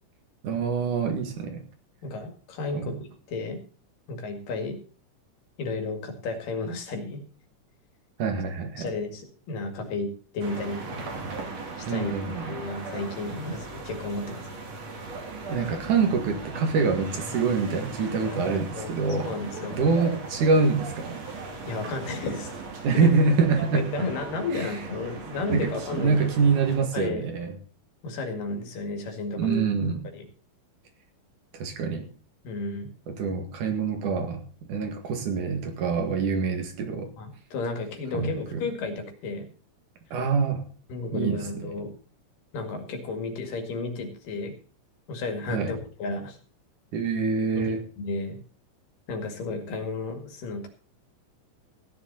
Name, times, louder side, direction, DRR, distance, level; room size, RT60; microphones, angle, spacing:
voice 1, 0.4-1.6 2.7-2.9 8.2-8.9 11.9-12.6 15.5-19.4 19.7-21.2 22.8-24.1 24.5-24.7 25.5-27.5 29.4-30.1 31.5-32.1 33.1-34.4 34.7-37.1 38.1-38.7 40.1-40.6 41.1-41.7 45.5-45.8 46.9-47.9, right 5 dB, 70° right, 5 dB, 3.4 m, -25 dB
voice 2, 2.0-3.0 3.3-3.6 4.1-4.8 5.6-7.2 8.8-10.9 11.8-14.4 18.3-18.4 18.7-18.9 19.2-19.8 21.7-22.5 23.0-23.1 23.7-26.3 26.9-27.3 28.0-29.6 30.1-30.3 32.4-32.9 37.2-39.5 40.9-41.9 42.5-44.5 45.1-46.4 47.5-47.7 48.0-48.4 49.1-50.7, left 3 dB, 90° left, 5 dB, 3.8 m, -32 dB
sound 1, 10.4-26.8, right 3 dB, 55° right, 3.5 m, -38 dB
15.5 x 10.5 x 4.1 m, 0.39 s
omnidirectional pair, 3.7 m